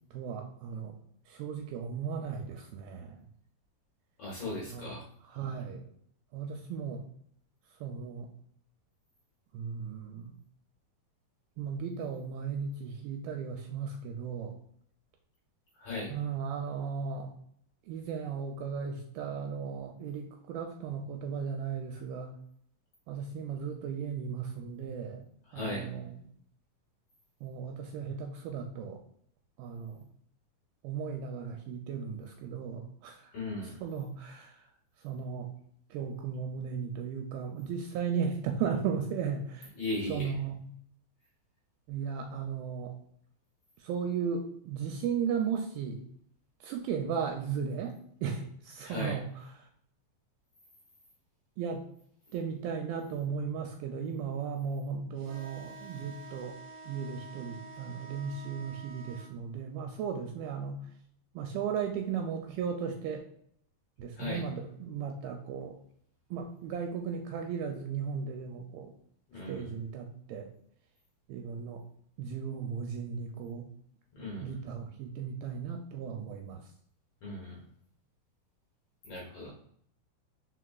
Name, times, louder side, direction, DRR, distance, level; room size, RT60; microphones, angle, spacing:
voice 1, 0.1-1.0 1.3-3.3 4.7-4.9 5.3-5.8 6.3-7.0 7.7-8.3 9.5-10.4 11.6-14.6 16.1-17.3 17.9-22.3 23.1-26.0 27.4-29.0 29.6-30.1 30.8-33.3 33.8-34.7 35.0-35.5 35.9-39.7 40.1-40.6 41.9-43.0 43.8-46.0 46.6-49.3 51.6-51.9 52.3-56.6 56.8-60.9 61.3-63.3 64.0-65.8 66.3-68.9 69.5-70.5 71.3-71.8 72.2-73.7 74.4-76.7, right 6 dB, 80° right, 3 dB, 2.2 m, -36 dB
voice 2, 4.2-5.1 15.7-16.1 25.5-25.9 33.3-33.8 39.7-40.4 48.8-49.2 64.2-64.4 69.3-69.7 74.1-74.6 77.2-77.6 79.0-79.5, left 2 dB, 75° left, -4 dB, 1.4 m, -37 dB
sound 1, 55.2-59.3, right 3 dB, 60° right, 1.7 m, -48 dB
4.7 x 4.3 x 2.3 m, 0.67 s
omnidirectional pair, 4.4 m